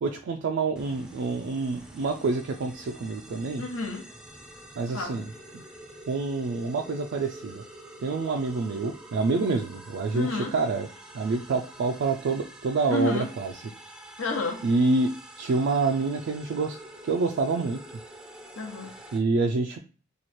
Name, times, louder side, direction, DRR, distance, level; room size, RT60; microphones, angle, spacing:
voice 1, 0.0-3.6 4.8-5.3 6.1-7.6 8.0-10.9 11.1-13.5 14.6-15.1 15.4-16.8 17.0-17.8 19.1-19.8, right 3 dB, 60° right, 3 dB, 0.3 m, -27 dB
sound 1, 0.7-19.2, right 1 dB, 5° right, 0.5 m, -47 dB
voice 2, 3.6-4.1 4.9-5.2 10.1-10.5 12.9-13.3 14.2-14.6 18.6-19.0, left 3 dB, 70° left, 3 dB, 0.9 m, -30 dB
3.0 x 2.3 x 4.2 m, 0.38 s
head